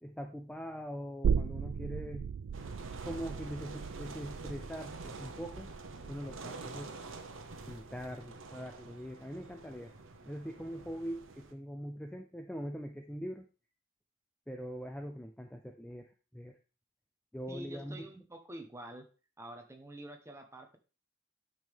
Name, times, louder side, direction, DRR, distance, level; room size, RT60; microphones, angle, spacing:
voice 1, 0.0-2.3 3.0-5.7 6.0-6.9 7.7-9.9 10.3-13.5 14.5-16.6 17.3-18.1, equal, 5° left, 4 dB, 0.5 m, -42 dB
sound 1, 1.2-8.5 8.9-9.0, right 6 dB, 90° right, 0.4 m, -37 dB
sound 2, 2.5-11.5, right 3 dB, 70° right, 0.9 m, -47 dB
voice 2, 17.5-19.1 19.4-20.8, right 1 dB, 15° right, 4 dB, 1.0 m, -47 dB
9.2 x 5.4 x 3.5 m, 0.34 s
head